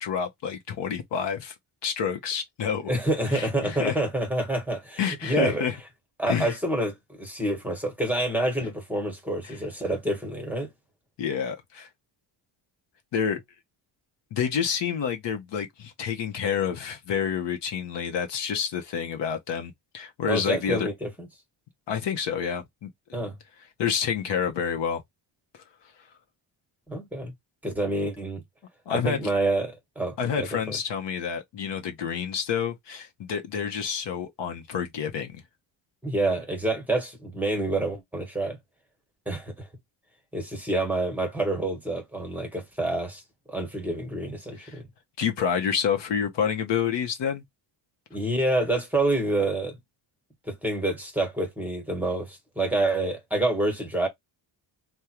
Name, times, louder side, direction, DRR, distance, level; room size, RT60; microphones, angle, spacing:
voice 1, 0.0-1.5 1.8-2.9 3.3-4.0 5.0-5.7 6.3-6.5 9.4-9.6 11.2-11.9 13.1-13.4 14.3-20.9 21.9-22.9 23.8-25.0 28.9-29.2 30.2-35.4 44.6-44.8 45.2-47.4, left 7 dB, 60° left, 0.8 m, -28 dB
voice 2, 2.9-5.7 6.2-10.7 20.3-21.3 23.1-23.3 26.9-27.3 27.6-28.4 28.9-30.8 36.0-38.6 39.3-39.7 40.3-43.2 43.5-44.8 48.1-49.8 50.5-54.1, right 1 dB, 5° right, 1.1 m, -27 dB
3.5 x 2.2 x 2.9 m
cardioid pair, 120°, 47 cm